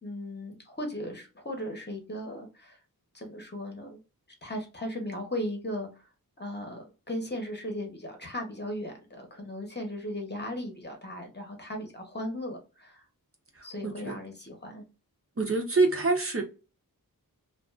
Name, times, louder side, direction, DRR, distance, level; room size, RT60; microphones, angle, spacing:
voice 1, 0.0-2.8 3.1-4.0 4.4-5.9 6.4-13.0 13.6-14.8, left 1 dB, 30° left, 0.9 m, -37 dB
voice 2, 13.5-14.2 15.4-16.4, right 3 dB, 40° right, 0.7 m, -26 dB
2.5 x 2.3 x 2.4 m
wide cardioid pair, 60°, 36 cm